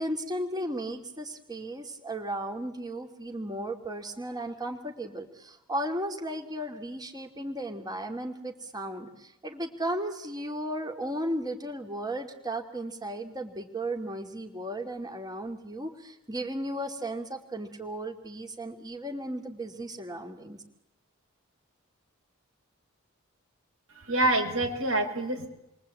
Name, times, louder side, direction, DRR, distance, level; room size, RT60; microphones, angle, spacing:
voice 1, 0.0-20.6, right 1 dB, 20° right, 3 dB, 2.7 m, -35 dB
voice 2, 24.0-25.5, right 2 dB, 80° right, 3 dB, 5.7 m, -26 dB
29.5 x 23.5 x 8.6 m, 0.88 s
head